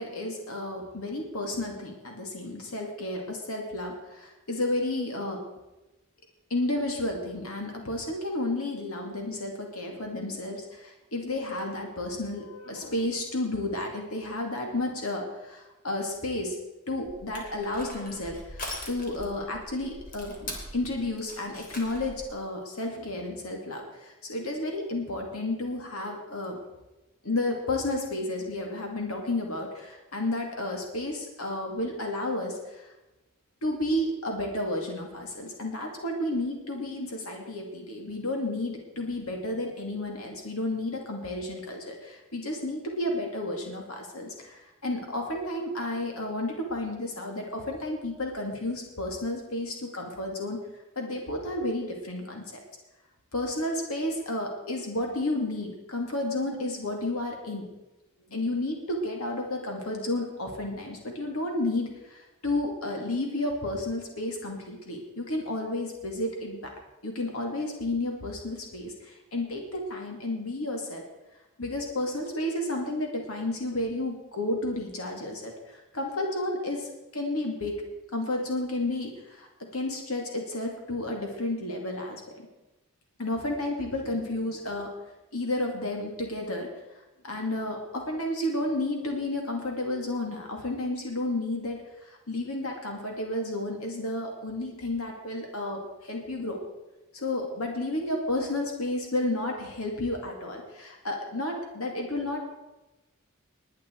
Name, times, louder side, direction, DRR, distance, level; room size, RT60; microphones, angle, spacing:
voice 1, 0.0-5.5 6.5-16.6 16.9-26.6 27.2-32.9 33.6-50.6 51.0-52.6 53.3-57.7 58.3-66.7 67.0-71.0 71.6-77.8 78.1-82.5 83.2-84.9 85.3-86.7 87.2-96.6 97.1-102.4, left 1 dB, 80° left, 1 dB, 2.6 m, -32 dB
Crushing, 17.0-22.3, left 1 dB, 40° left, 3.3 m, -41 dB
21.0 x 9.6 x 4.7 m, 1.0 s
head